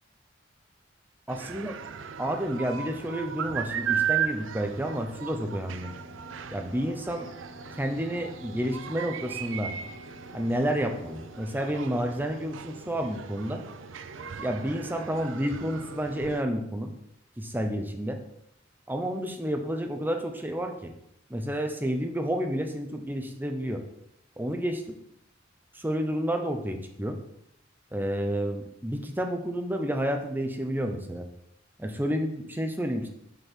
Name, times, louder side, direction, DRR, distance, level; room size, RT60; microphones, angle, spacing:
voice 1, 1.3-1.7 2.2-5.9 6.5-7.3 7.8-9.7 10.3-13.6 14.4-16.9 17.4-18.2 18.9-20.9 21.3-23.8 24.4-25.0 25.7-27.2 27.9-31.3 31.8-33.1, equal, 10° right, 5 dB, 0.8 m, -30 dB
sound 1, 1.3-16.4, right 8 dB, 80° right, 0.5 m, -36 dB
Wind instrument woodwind instrument, 5.4-11.7, equal, 55° left, 1.6 m, -51 dB
7.2 x 5.8 x 4.5 m, 0.76 s
head